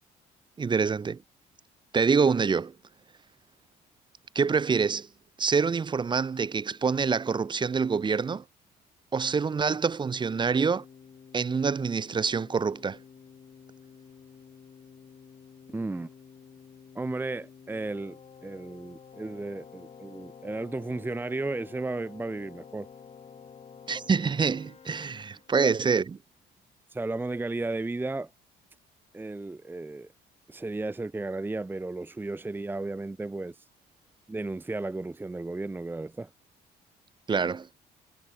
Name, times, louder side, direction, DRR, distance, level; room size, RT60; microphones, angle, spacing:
voice 1, 0.6-1.2 1.9-2.7 4.3-5.1 5.4-8.4 9.1-10.8 11.3-13.0 23.9-26.2 37.3-37.7, right 5 dB, 25° right, 1.3 m, -26 dB
Keyboard (musical), 10.7-25.7, left 7 dB, 40° left, 6.5 m, -51 dB
voice 2, 15.7-16.1 16.9-22.9 25.5-25.7 26.9-28.3 29.1-30.1 30.5-33.6 34.3-36.3, right 2 dB, 10° right, 1.0 m, -34 dB
cardioid pair, 110°, 17 cm